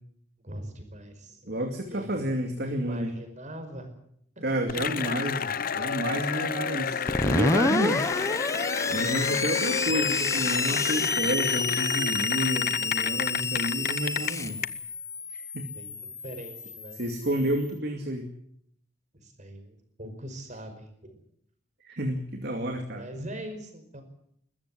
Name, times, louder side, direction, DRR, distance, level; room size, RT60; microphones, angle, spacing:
voice 1, 0.4-1.5 1.8-2.3 2.6-3.9 4.3-4.5 15.7-17.0 19.1-21.2 22.9-24.0, right 1 dB, 40° right, 7 dB, 5.1 m, -42 dB
voice 2, 1.5-3.1 4.4-8.1 8.9-14.6 15.3-15.7 17.0-18.3 21.8-23.0, right 1 dB, 60° right, 4 dB, 2.4 m, -30 dB
Cheering / Applause, 4.7-14.7, left 7 dB, 50° left, 0.8 m, -30 dB
Screech, 7.1-17.5, left 3 dB, 15° left, 0.9 m, -29 dB
21.5 x 14.0 x 9.8 m, 0.71 s
head